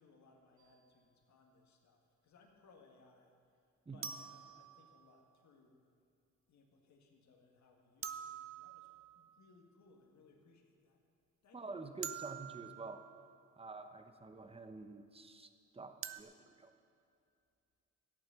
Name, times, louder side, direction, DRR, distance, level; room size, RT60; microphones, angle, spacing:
voice 1, 0.0-3.7 3.9-5.8 6.5-11.0 11.4-11.6, left 3 dB, 65° left, 2 dB, 1.9 m, -66 dB
sound 1, 0.6-0.7 4.0-5.3 8.0-9.4 12.0-13.3 16.0-16.2, right 8 dB, 45° right, 0.7 m, -47 dB
voice 2, 11.5-13.0 13.6-16.7, right 3 dB, 20° right, 7 dB, 1.0 m, -48 dB
13.0 x 8.8 x 6.9 m, 2.4 s
cardioid pair, 90°, 30 cm